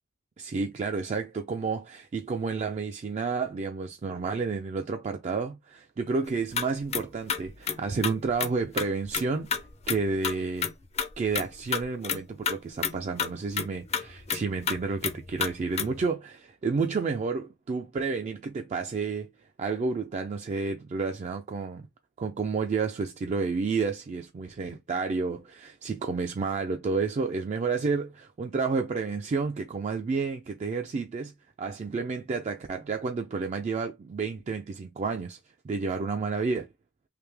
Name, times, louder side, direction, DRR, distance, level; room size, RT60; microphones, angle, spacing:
voice 1, 0.4-10.7 11.2-19.3 19.6-21.9 22.2-31.3 31.6-35.4 35.6-36.7, right 4 dB, 35° right, 0.3 m, -30 dB
sound 1, 6.3-6.6 6.9-7.0 7.3-8.5 8.8-9.2 9.5-10.0 10.2-12.2 12.5-12.6 12.8-12.9 13.2-16.1, left 7 dB, 35° left, 0.4 m, -30 dB
3.3 x 2.7 x 3.3 m
head